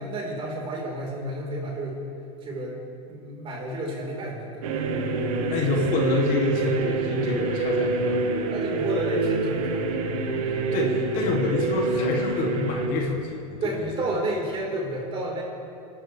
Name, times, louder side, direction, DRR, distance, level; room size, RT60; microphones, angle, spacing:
voice 1, 0.0-2.0 2.4-2.8 3.1-4.9 8.5-10.6 13.6-15.4, right 1 dB, 30° right, -2 dB, 4.4 m, -31 dB
sound 1, 4.6-12.9, right 3 dB, 75° right, 1.8 m, -27 dB
voice 2, 5.5-8.2 10.5-13.9, left 2 dB, 50° left, -1 dB, 2.6 m, -27 dB
29.5 x 12.5 x 3.4 m, 2.8 s
supercardioid pair, 125°, 18 cm